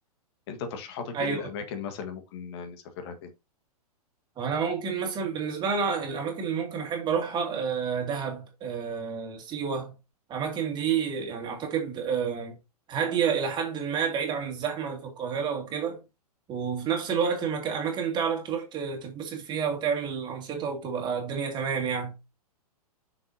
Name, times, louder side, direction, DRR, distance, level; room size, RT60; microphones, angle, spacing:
voice 1, 0.5-3.3, left 6 dB, 40° left, 1.6 m, -37 dB
voice 2, 1.1-1.5 4.4-9.9 10.3-12.6 12.9-16.0 16.5-22.1, right 6 dB, 20° right, 2.5 m, -29 dB
7.0 x 6.3 x 2.8 m
figure-of-eight pair, 110°, 20 cm